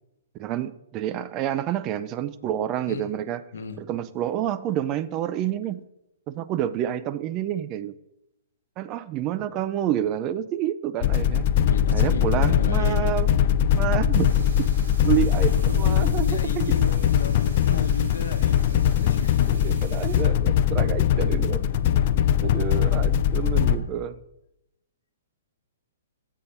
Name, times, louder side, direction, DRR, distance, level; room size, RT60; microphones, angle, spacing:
voice 1, 0.4-3.4 3.8-5.8 6.3-7.9 8.8-11.5 11.9-13.3 13.7-14.3 14.6-14.7 15.0-16.7 19.0-19.1 19.5-22.0 22.4-24.2, right 11 dB, 30° right, 14 dB, 0.4 m, -29 dB
sound 1, 11.0-23.8, left 9 dB, 50° left, 0.4 m, -21 dB
voice 2, 11.6-13.1 15.5-19.5 23.4-23.9, left 4 dB, 75° left, 7 dB, 0.9 m, -35 dB
sound 2, 14.1-20.2, right 4 dB, 65° right, 2.4 m, -47 dB
7.3 x 4.2 x 6.7 m, 0.86 s
hypercardioid pair, 130°, 0 cm